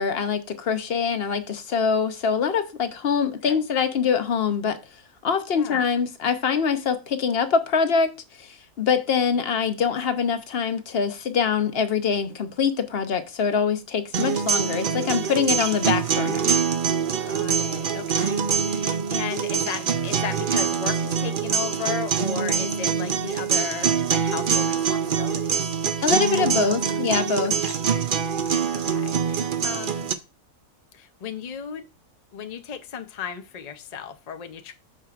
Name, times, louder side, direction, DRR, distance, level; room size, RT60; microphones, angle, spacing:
voice 1, 0.0-4.8 5.2-8.1 8.4-16.5 26.0-27.5, left 6 dB, 50° left, 0.8 m, -24 dB
sound 1, 14.1-30.1, right 7 dB, 65° right, 0.5 m, -24 dB
voice 2, 17.2-25.7 26.4-26.7 27.6-27.7 28.7-30.1 30.9-31.8 32.3-34.7, left 8 dB, 80° left, 0.3 m, -35 dB
14.0 x 4.8 x 2.4 m
omnidirectional pair, 1.6 m